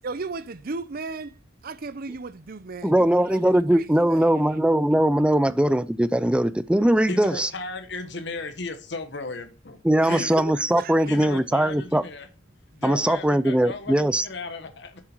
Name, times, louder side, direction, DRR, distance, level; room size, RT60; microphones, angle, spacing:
voice 1, 0.0-1.3 1.6-4.3 10.0-11.1, right 4 dB, 50° right, 0.6 m, -35 dB
voice 2, 2.8-7.5 9.8-12.0 12.8-14.3, right 1 dB, 5° right, 0.4 m, -21 dB
voice 3, 7.1-9.8 10.0-10.3 11.1-12.3 12.7-15.0, left 3 dB, 65° left, 1.4 m, -35 dB
8.4 x 7.6 x 4.5 m
head